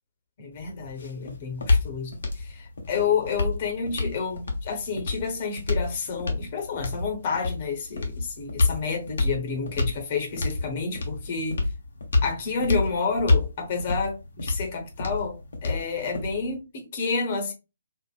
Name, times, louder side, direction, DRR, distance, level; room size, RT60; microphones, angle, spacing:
voice 1, 0.4-11.6 12.2-17.5, left 5 dB, 40° left, 1.1 m, -30 dB
sound 1, 0.5-16.6, left 3 dB, 60° left, 1.0 m, -29 dB
4.5 x 2.5 x 2.4 m
figure-of-eight pair, 135°, 0 cm